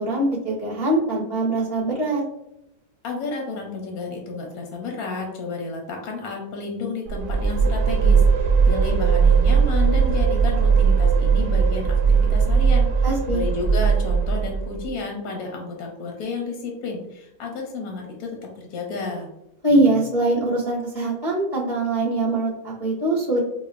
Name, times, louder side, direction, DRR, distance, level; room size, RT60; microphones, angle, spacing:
voice 1, 0.0-2.2 13.0-13.4 19.6-23.4, right 2 dB, 50° left, -9 dB, 0.4 m, -22 dB
voice 2, 3.0-18.3 18.6-19.3, left 3 dB, 70° left, 1 dB, 0.9 m, -31 dB
sound 1, 7.1-14.9, right 5 dB, 80° right, 0.8 m, -19 dB
5.3 x 2.1 x 2.4 m, 0.83 s
omnidirectional pair, 2.2 m